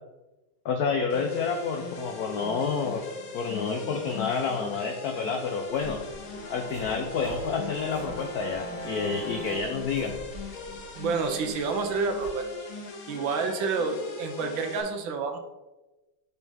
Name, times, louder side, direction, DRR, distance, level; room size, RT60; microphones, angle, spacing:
voice 1, 0.6-3.0 3.3-6.0 6.5-10.1, left 5 dB, 90° left, 4 dB, 0.8 m, -29 dB
sound 1, 1.1-14.8, left 4 dB, 75° left, 1.8 m, -41 dB
Subway metro underground, 5.7-12.3, right 1 dB, 45° right, 1.5 m, -45 dB
sound 2, 6.3-9.6, equal, 30° left, 1.8 m, -40 dB
voice 2, 11.0-12.4 13.1-15.4, right 4 dB, 70° right, 5 dB, 1.4 m, -29 dB
6.1 x 5.5 x 3.6 m, 1.1 s
omnidirectional pair, 2.3 m